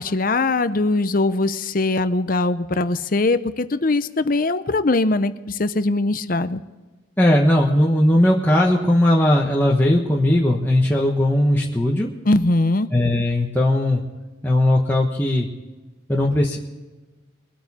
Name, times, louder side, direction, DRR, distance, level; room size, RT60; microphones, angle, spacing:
voice 1, 0.0-6.6 12.3-12.9, left 2 dB, 45° left, 12 dB, 0.7 m, -21 dB
voice 2, 7.2-12.1 12.9-14.0 14.4-15.5 16.1-16.6, left 1 dB, 10° left, -3 dB, 1.1 m, -18 dB
23.0 x 9.0 x 4.2 m, 1.2 s
head